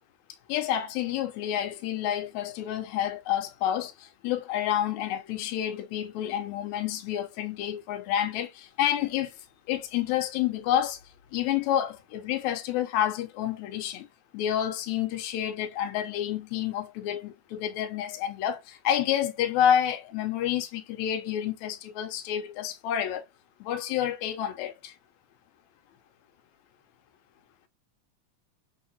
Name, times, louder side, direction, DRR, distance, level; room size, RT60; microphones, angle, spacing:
voice 1, 0.5-9.4 9.7-11.0 11.3-14.1 14.3-23.2 23.6-25.0, left 10 dB, 85° left, 2.0 m, -29 dB
6.3 x 2.8 x 2.6 m
omnidirectional pair, 3.3 m